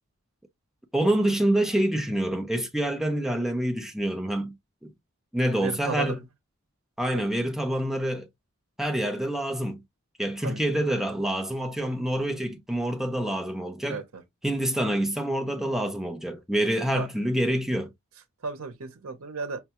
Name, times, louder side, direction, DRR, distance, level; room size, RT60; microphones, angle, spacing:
voice 1, 0.9-4.5 4.8-4.9 5.3-6.2 7.0-8.3 8.8-9.8 10.2-14.0 14.4-17.9, right 1 dB, ahead, 0.5 m, -27 dB
voice 2, 5.6-6.1 7.1-7.2 10.4-10.6 13.9-14.2 17.0-17.1 18.4-19.6, right 4 dB, 75° right, 0.7 m, -33 dB
5.4 x 2.3 x 2.8 m
head